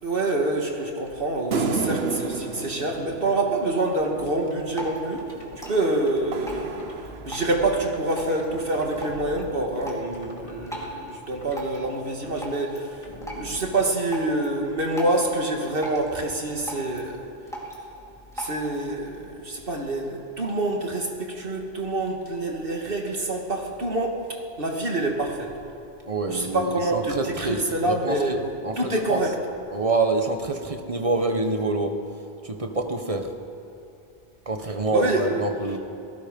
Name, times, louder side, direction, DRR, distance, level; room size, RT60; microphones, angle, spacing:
voice 1, 0.0-5.3 5.7-13.1 13.4-17.3 18.4-25.5 26.3-28.4 28.8-29.3 34.9-35.4, right 2 dB, 60° right, 1 dB, 2.5 m, -26 dB
sound 1, 1.5-4.2 5.6-7.7, right 4 dB, 75° right, 1.3 m, -31 dB
sound 2, 3.9-5.6 6.0-10.9 11.3-11.9 12.2-12.5 12.9-14.3, left 1 dB, 30° left, 2.7 m, -43 dB
Drip, 4.4-18.9, right 1 dB, 5° left, 4.1 m, -40 dB
voice 2, 26.1-29.2 29.7-31.9 32.4-33.3 34.4-35.8, right 2 dB, 35° right, 5 dB, 1.5 m, -27 dB
27.5 x 18.0 x 5.5 m, 2.7 s
omnidirectional pair, 1.1 m